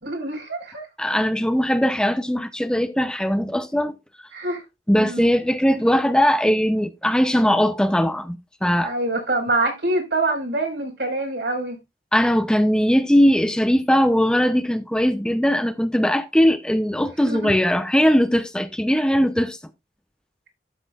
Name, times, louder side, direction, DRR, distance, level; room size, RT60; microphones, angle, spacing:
voice 1, 0.0-0.9 4.3-4.6 4.9-5.3 8.8-11.8 17.0-17.5, right 2 dB, 80° right, 4.8 m, -25 dB
voice 2, 1.0-4.0 4.9-8.9 12.1-19.6, equal, 5° left, 0.5 m, -20 dB
12.0 x 7.5 x 2.4 m
head